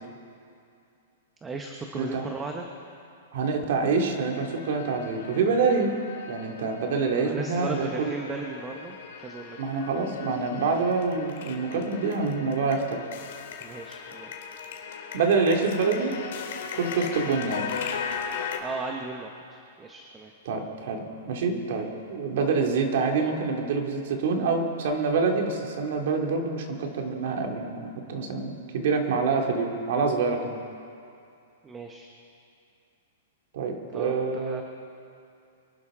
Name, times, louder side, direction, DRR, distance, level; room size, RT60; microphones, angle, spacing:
voice 1, 1.4-2.7 7.1-9.6 13.5-14.3 18.6-20.3 31.6-32.1 33.9-34.1 34.4-34.6, right 3 dB, 10° right, 2 dB, 0.8 m, -37 dB
voice 2, 1.9-2.3 3.3-5.9 6.3-8.1 9.6-13.0 15.1-16.2 16.7-17.7 20.5-30.6 33.5-34.6, right 4 dB, 55° right, 2 dB, 2.3 m, -26 dB
sound 1, 4.4-18.6, left 7 dB, 60° left, 2.0 m, -38 dB
25.0 x 12.0 x 3.7 m, 2.5 s
hypercardioid pair, 165°, 0 cm